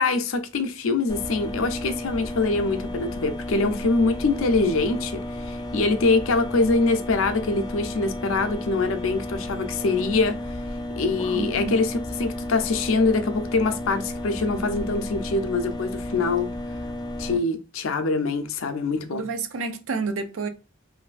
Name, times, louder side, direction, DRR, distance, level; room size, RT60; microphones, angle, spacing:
voice 1, 0.0-10.4 11.0-16.5 17.2-19.2, left 3 dB, 85° left, 0.5 m, -24 dB
sound 1, 1.1-17.4, left 1 dB, 20° left, 0.3 m, -33 dB
voice 2, 11.3-11.8 19.1-20.5, right 4 dB, 85° right, 0.5 m, -29 dB
3.1 x 2.6 x 2.4 m
head